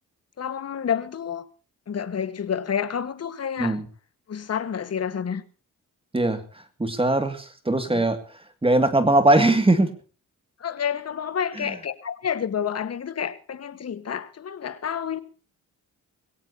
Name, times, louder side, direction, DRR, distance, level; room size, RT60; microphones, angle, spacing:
voice 1, 0.4-1.5 1.9-3.8 4.3-5.4 7.8-8.0 10.6-15.2, left 8 dB, 50° left, 1.5 m, -29 dB
voice 2, 6.8-8.2 8.6-9.9, right 2 dB, 15° right, 2.2 m, -20 dB
21.5 x 17.0 x 2.8 m
cardioid pair, 90°, 33 cm